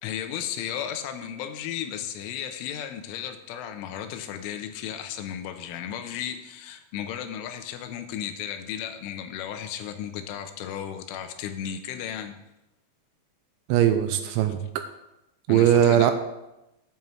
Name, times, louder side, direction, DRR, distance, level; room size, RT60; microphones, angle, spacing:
voice 1, 0.0-12.4 15.5-16.1, left 9 dB, 90° left, 8 dB, 3.3 m, -34 dB
voice 2, 13.7-14.6 15.5-16.1, right 10 dB, 80° right, 8 dB, 2.8 m, -19 dB
9.3 x 5.6 x 7.3 m, 0.93 s
omnidirectional pair, 5.5 m